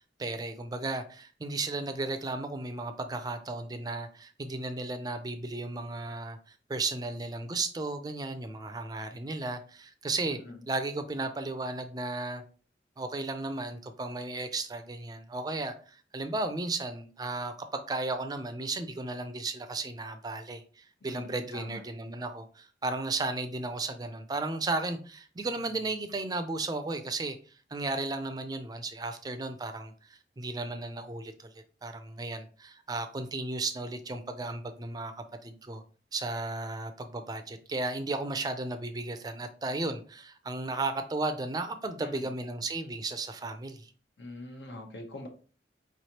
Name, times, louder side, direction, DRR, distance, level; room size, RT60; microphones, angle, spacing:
voice 1, 0.2-10.4 10.7-12.4 13.0-27.4 27.7-35.1 35.4-35.8 36.1-43.9, right 2 dB, 20° right, 0.4 m, -34 dB
voice 2, 10.2-10.6 21.0-21.8 42.0-42.3 44.2-45.3, left 1 dB, 75° left, 1.0 m, -43 dB
4.7 x 3.2 x 2.9 m
head